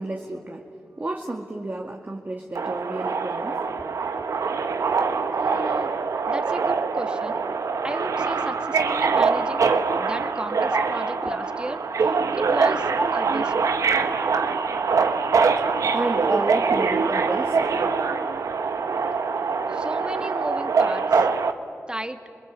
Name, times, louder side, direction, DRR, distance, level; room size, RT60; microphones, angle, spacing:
voice 1, 0.0-4.1 10.7-10.8 11.2-11.4 13.0-13.1 15.4-18.0 18.5-19.0 19.4-19.5, right 2 dB, 35° right, 2 dB, 2.2 m, -31 dB
Subway metro underground, 2.6-21.5, right 5 dB, 80° right, 1.2 m, -24 dB
voice 2, 5.4-5.9 6.2-7.4 7.8-9.7 10.0-13.4 19.7-21.3 21.9-22.2, right 1 dB, 15° right, 7 dB, 2.1 m, -34 dB
28.0 x 21.5 x 8.5 m, 2.5 s
cardioid pair, 45°, 5 cm